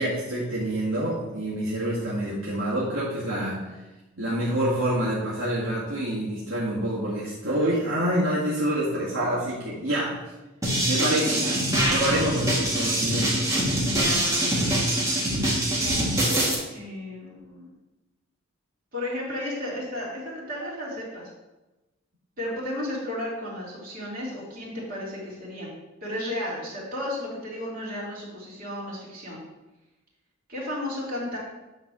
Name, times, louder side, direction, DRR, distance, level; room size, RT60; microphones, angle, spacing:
voice 1, 0.0-3.8 4.2-10.2 10.9-11.6 11.9-13.6, right 1 dB, 70° right, -8 dB, 1.8 m, -27 dB
sound 1, 10.6-16.5, right 1 dB, 15° right, 1.7 m, -24 dB
voice 2, 15.7-16.0 16.7-17.7 18.9-21.3 22.4-25.7 26.0-29.4 30.5-31.4, left 1 dB, 45° right, -6 dB, 2.9 m, -33 dB
9.2 x 3.4 x 6.1 m, 1.1 s
head